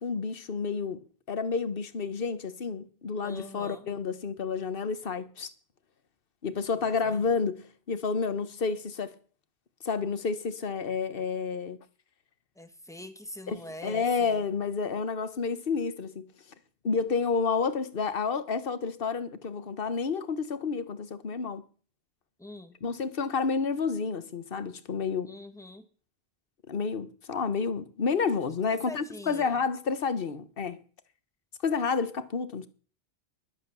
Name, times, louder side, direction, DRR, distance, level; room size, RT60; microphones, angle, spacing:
voice 1, 0.0-5.5 6.4-9.1 9.8-11.8 13.5-16.3 16.8-21.6 22.8-25.3 26.7-30.8 31.6-32.7, left 5 dB, 60° left, 1.3 m, -30 dB
voice 2, 3.2-3.9 6.8-7.3 12.6-14.4 22.4-22.7 25.3-25.9 28.7-29.6, left 1 dB, 5° left, 1.5 m, -44 dB
11.5 x 11.5 x 6.9 m
omnidirectional pair, 1.1 m